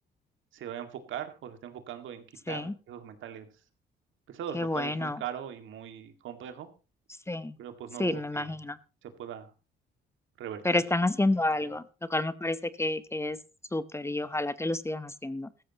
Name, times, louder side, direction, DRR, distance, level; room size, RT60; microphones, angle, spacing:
voice 1, 0.5-3.5 4.3-6.7 7.6-8.6 9.0-9.5 10.4-10.8 11.6-11.7, right 9 dB, 80° right, 8 dB, 2.1 m, -40 dB
voice 2, 4.5-5.2 7.3-7.6 8.0-8.8 10.6-11.8 12.1-13.4 13.7-15.5, left 2 dB, 15° left, 15 dB, 0.8 m, -29 dB
15.5 x 13.5 x 2.9 m, 0.31 s
cardioid pair, 90°, 20 cm